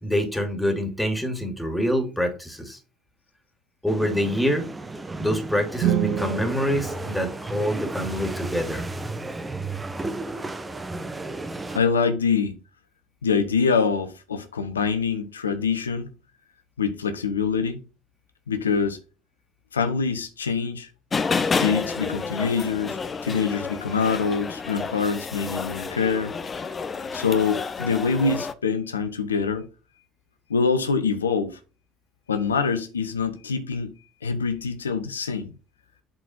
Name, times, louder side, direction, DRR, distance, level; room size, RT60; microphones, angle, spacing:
voice 1, 0.0-2.8 3.8-4.7 5.2-8.9, equal, 5° left, 2.4 m, -26 dB
sound 1, 3.9-11.8, right 2 dB, 15° right, 0.9 m, -34 dB
sound 2, 5.7-8.0, right 11 dB, 55° right, 0.6 m, -28 dB
voice 2, 11.7-12.6 13.2-16.1 16.8-17.8 18.5-19.0 19.7-20.9 21.6-26.3 27.1-29.7 30.5-31.6 32.3-33.9 34.2-35.5, left 5 dB, 85° left, 0.7 m, -25 dB
sound 3, 21.1-28.5, left 5 dB, 30° left, 0.9 m, -30 dB
7.6 x 4.2 x 4.2 m
figure-of-eight pair, 60°, 0 cm